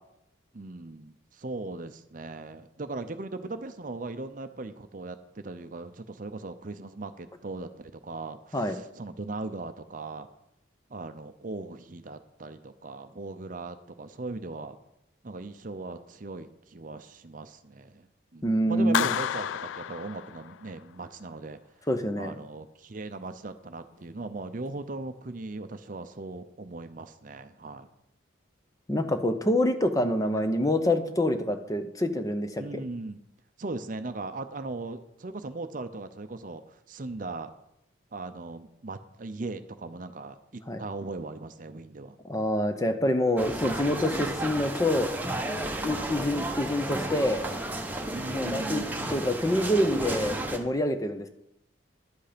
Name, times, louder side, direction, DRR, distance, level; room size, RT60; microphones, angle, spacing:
voice 1, 0.5-10.3 10.9-14.8 15.2-18.1 18.3-21.6 22.2-27.9 32.6-33.2 33.6-37.5 38.1-42.2 48.1-49.2, right 2 dB, 40° right, 10 dB, 0.6 m, -38 dB
voice 2, 18.4-19.1 21.9-22.3 28.9-32.8 40.7-40.8 42.2-45.1 45.8-47.4 48.3-51.3, left 1 dB, 15° left, 8 dB, 0.7 m, -26 dB
Clapping, 18.9-20.8, left 9 dB, 70° left, 0.3 m, -31 dB
sound 1, 43.4-50.6, right 1 dB, 10° right, 0.9 m, -33 dB
11.0 x 8.2 x 5.1 m, 0.82 s
head